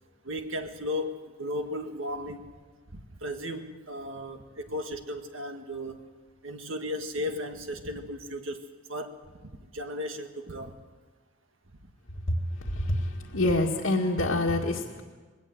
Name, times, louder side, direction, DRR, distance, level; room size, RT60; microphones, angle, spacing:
voice 1, 0.2-2.5 2.9-6.0 6.4-8.6 8.9-10.8 11.8-11.9, left 1 dB, 80° right, 6 dB, 1.8 m, -35 dB
voice 2, 12.3-15.0, left 1 dB, 80° left, -2 dB, 1.9 m, -27 dB
21.0 x 18.0 x 7.9 m, 1.4 s
head